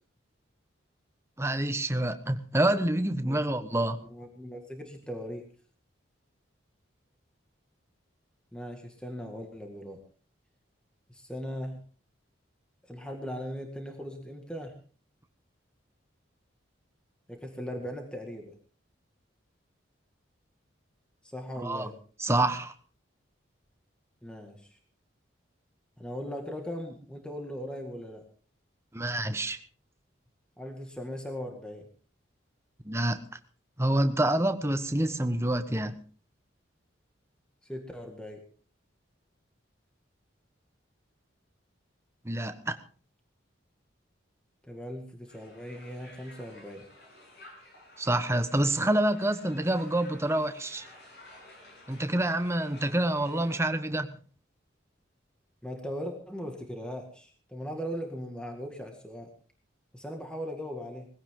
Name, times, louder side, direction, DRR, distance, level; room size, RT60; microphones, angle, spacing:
voice 1, 1.4-4.0 21.6-21.9 22.2-22.7 28.9-29.6 32.8-33.2 33.8-36.0 42.2-42.8 48.0-50.9 51.9-54.1, right 1 dB, 15° right, 9 dB, 1.1 m, -27 dB
voice 2, 4.1-5.5 8.5-10.0 11.1-11.8 12.8-14.8 17.3-18.5 21.2-21.9 24.2-24.8 26.0-28.2 30.6-31.9 37.6-38.4 44.7-46.9 55.6-59.3 59.9-61.1, equal, 5° left, 2 dB, 1.9 m, -39 dB
Crowd, 45.3-53.6, left 1 dB, 55° left, 6.8 m, -53 dB
20.5 x 15.5 x 3.8 m, 0.41 s
head